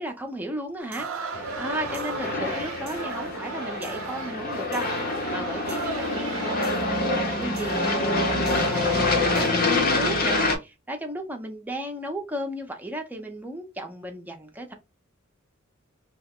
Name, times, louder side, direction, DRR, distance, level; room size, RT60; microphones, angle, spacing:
voice 1, 0.0-7.0 7.4-14.7, right 1 dB, 10° right, 0.5 m, -35 dB
sound 1, 0.8-9.5, right 5 dB, 70° right, 0.5 m, -36 dB
Aircraft, 1.3-10.6, left 2 dB, 45° left, 0.7 m, -26 dB
2.9 x 2.1 x 3.5 m
head